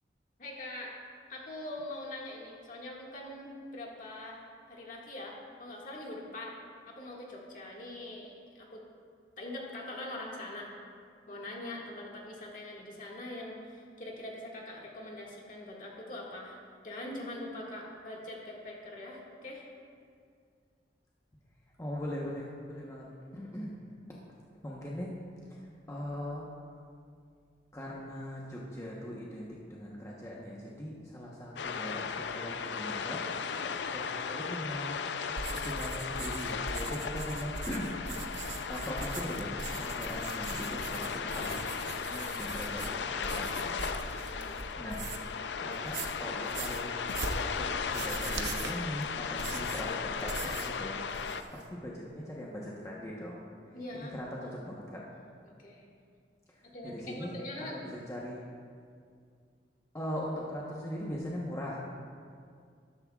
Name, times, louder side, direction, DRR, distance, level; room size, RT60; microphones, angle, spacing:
voice 1, 0.4-0.9 1.3-6.6 6.9-8.8 9.4-10.7 11.3-16.6 16.8-19.7 41.9-42.4 44.2-44.6 53.7-54.1 54.4-54.5 55.4-55.8 56.6-57.8, left 1 dB, 50° left, -3 dB, 1.9 m, -43 dB
voice 2, 21.8-23.8 24.6-25.1 25.5-26.5 27.7-33.2 33.5-33.6 33.9-35.0 35.5-37.9 38.7-41.6 42.4-43.8 44.7-46.9 47.6-53.4 53.9-55.0 56.5-58.4 59.9-61.9, equal, 20° left, -4 dB, 1.0 m, -40 dB
sound 1, 31.6-51.4, left 6 dB, 75° left, 0.5 m, -36 dB
sound 2, 35.3-45.4 45.7-50.8 51.1-51.6, right 3 dB, 80° right, 0.8 m, -41 dB
13.0 x 12.0 x 2.4 m, 2.2 s
head